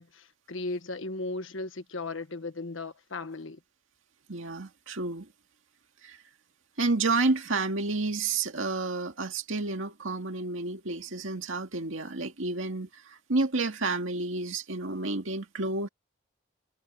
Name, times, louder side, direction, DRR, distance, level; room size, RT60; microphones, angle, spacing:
voice 1, 0.0-3.6, left 2 dB, 80° left, 1.4 m, -36 dB
voice 2, 4.3-5.3 6.0-6.2 6.8-15.9, right 3 dB, 80° right, 2.1 m, -30 dB
head